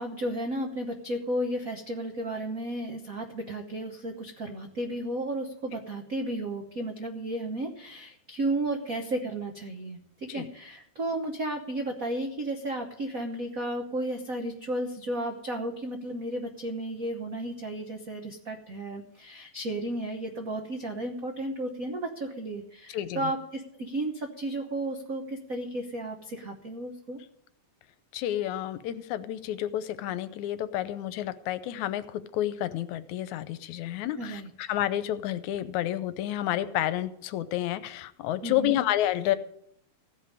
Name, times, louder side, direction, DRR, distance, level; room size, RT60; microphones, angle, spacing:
voice 1, 0.0-27.2 34.2-34.5 38.4-38.8, right 1 dB, 85° right, 4 dB, 0.7 m, -33 dB
voice 2, 22.9-23.3 28.1-39.4, left 13 dB, 80° left, 13 dB, 2.1 m, -30 dB
15.5 x 5.3 x 9.8 m, 0.72 s
omnidirectional pair, 3.4 m